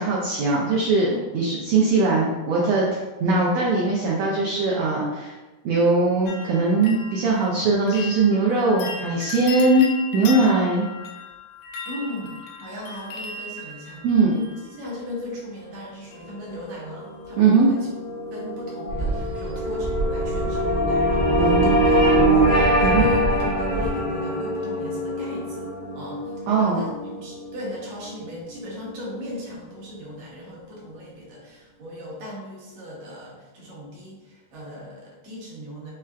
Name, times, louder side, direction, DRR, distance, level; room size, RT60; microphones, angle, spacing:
voice 1, 0.0-1.1 1.3-5.3 5.6-10.9 14.0-14.3 17.4-17.7 21.4-21.7 22.8-23.0 26.5-26.8, right 3 dB, 85° right, -4 dB, 1.4 m, -20 dB
sound 1, 6.3-15.2 16.1-16.6 16.9-17.5 17.8-17.9, left 4 dB, 90° left, 2.1 m, -38 dB
voice 2, 11.8-14.1 14.3-17.9 18.3-35.9, left 1 dB, 70° right, -5 dB, 1.9 m, -37 dB
sound 2, 16.4-28.9, equal, 55° left, 0.5 m, -24 dB
sound 3, 18.9-23.9, right 2 dB, 50° right, 0.8 m, -28 dB
5.5 x 2.2 x 2.3 m, 1.2 s
omnidirectional pair, 3.6 m